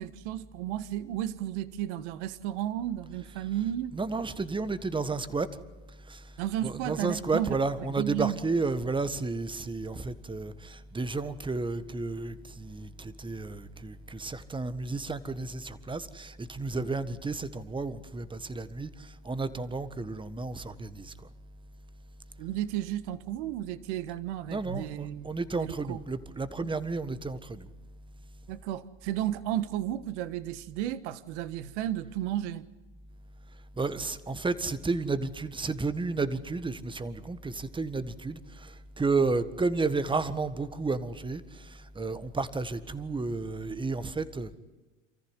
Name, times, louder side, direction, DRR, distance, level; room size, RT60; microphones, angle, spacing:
voice 1, 0.0-4.0 6.4-7.6 8.0-8.4 22.4-25.3 25.6-26.0 26.6-26.7 28.5-32.7, right 12 dB, 65° right, 1.5 m, -33 dB
voice 2, 3.9-5.5 6.1-6.2 6.6-21.1 24.5-27.7 33.8-44.6, right 3 dB, 15° right, 1.5 m, -32 dB
28.0 x 14.5 x 9.9 m
hypercardioid pair, 95°, 38 cm